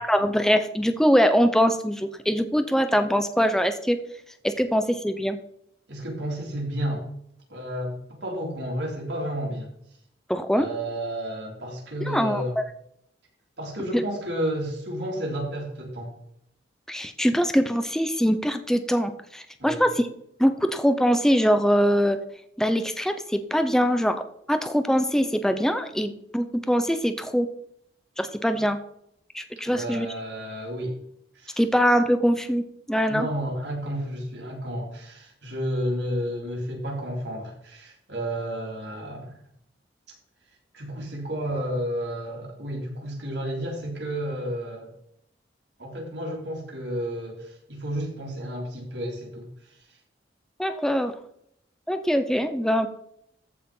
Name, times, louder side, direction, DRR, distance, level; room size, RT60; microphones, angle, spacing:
voice 1, 0.0-4.0 4.4-5.4 10.3-10.7 12.0-12.4 13.9-14.0 16.9-20.1 20.4-22.2 22.6-27.5 28.2-28.8 29.3-30.1 31.6-32.6 32.9-33.3 50.6-51.1 51.9-52.9, equal, 5° left, 9 dB, 0.7 m, -23 dB
voice 2, 5.9-7.0 7.5-9.7 10.5-12.6 13.6-16.1 19.6-19.9 29.6-31.0 31.3-31.6 33.1-39.3 40.7-44.9 45.8-49.5, equal, 70° right, -2 dB, 4.1 m, -31 dB
14.5 x 5.0 x 5.5 m, 0.72 s
head